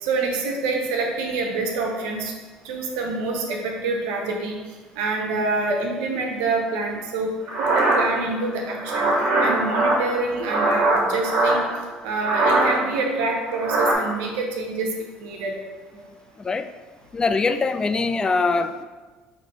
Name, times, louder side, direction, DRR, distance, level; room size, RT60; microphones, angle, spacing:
voice 1, 0.0-2.3 2.6-4.6 5.0-7.3 7.6-9.1 9.4-11.6 12.0-14.9 15.2-15.5 15.9-16.1, right 3 dB, 85° right, 1 dB, 0.6 m, -26 dB
sound 1, 7.5-11.8 12.2-13.0 13.3-13.9, right 2 dB, 65° right, 1.3 m, -21 dB
voice 2, 17.1-18.8, left 4 dB, 25° left, 10 dB, 0.3 m, -22 dB
4.0 x 2.9 x 4.6 m, 1.3 s
supercardioid pair, 80°, 3 cm